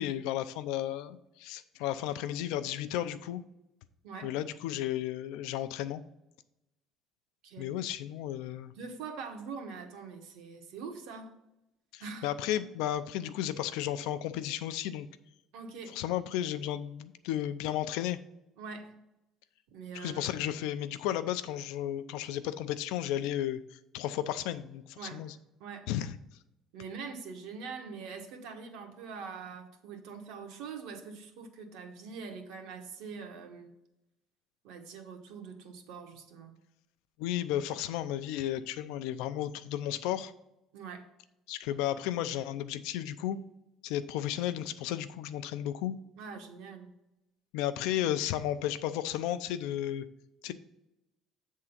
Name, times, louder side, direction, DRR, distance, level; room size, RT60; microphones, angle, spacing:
voice 1, 0.0-3.4 4.2-6.0 7.6-8.7 11.9-15.1 15.9-18.2 19.9-25.3 25.9-26.2 37.2-40.3 41.5-43.4 43.8-46.0 47.5-50.1 50.4-50.5, left 12 dB, 85° left, 12 dB, 0.5 m, -33 dB
voice 2, 8.7-11.3 12.0-12.3 15.5-15.9 18.6-19.0 19.7-20.4 25.0-25.2 25.6-25.9 26.7-33.7 34.6-36.6 40.7-41.1 46.2-46.9, right 5 dB, 75° right, 3 dB, 1.3 m, -43 dB
7.8 x 3.7 x 5.8 m, 0.89 s
cardioid pair, 175°, 0 cm